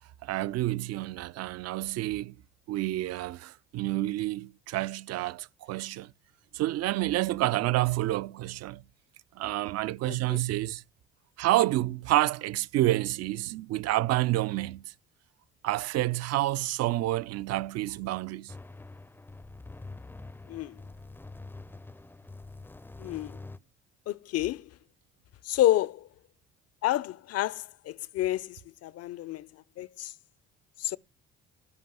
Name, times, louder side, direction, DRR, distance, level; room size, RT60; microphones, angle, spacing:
voice 1, 0.2-2.3 2.7-6.1 6.5-8.8 9.4-10.8 11.4-14.8 15.6-18.5, right 16 dB, 55° right, 0.5 m, -29 dB
voice 2, 10.1-10.4 20.5-20.8 23.0-23.4 24.1-24.8 25.4-26.1 26.8-30.1 30.8-31.0, left 14 dB, 55° left, 0.6 m, -30 dB
sound 1, 18.5-23.6, left 3 dB, 5° left, 0.5 m, -45 dB
9.7 x 5.2 x 7.6 m
hypercardioid pair, 60°, 30 cm